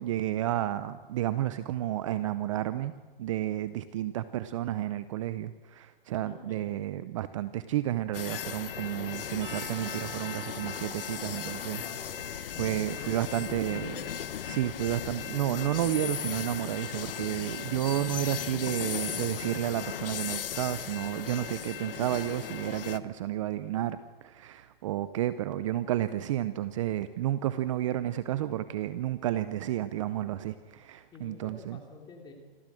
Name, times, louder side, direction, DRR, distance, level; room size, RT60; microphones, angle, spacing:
voice 1, 0.0-11.8 12.6-14.0 14.5-31.8, right 13 dB, 35° right, 13 dB, 0.7 m, -31 dB
voice 2, 6.2-6.8 11.8-12.2 12.5-14.1 31.1-32.3, left 3 dB, 15° left, 2 dB, 3.3 m, -46 dB
sound 1, 8.1-23.0, left 9 dB, 70° left, 1.2 m, -37 dB
Percussion / Church bell, 9.4-13.3, right 9 dB, 60° right, 3.1 m, -48 dB
26.5 x 14.0 x 7.7 m, 1.3 s
hypercardioid pair, 150°, 29 cm